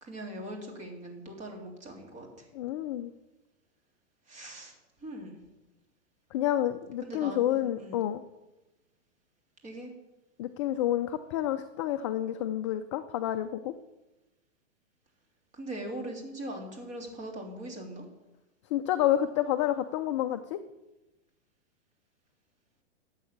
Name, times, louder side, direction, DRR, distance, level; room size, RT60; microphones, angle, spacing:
voice 1, 0.0-2.5 4.3-5.4 7.0-8.1 9.6-9.9 15.5-18.0, right 1 dB, 20° right, 1 dB, 2.9 m, -41 dB
voice 2, 2.5-3.1 6.3-8.2 10.4-13.7 18.7-20.6, left 12 dB, 25° left, 9 dB, 0.4 m, -29 dB
12.5 x 8.2 x 8.6 m, 1.0 s
hypercardioid pair, 145°, 37 cm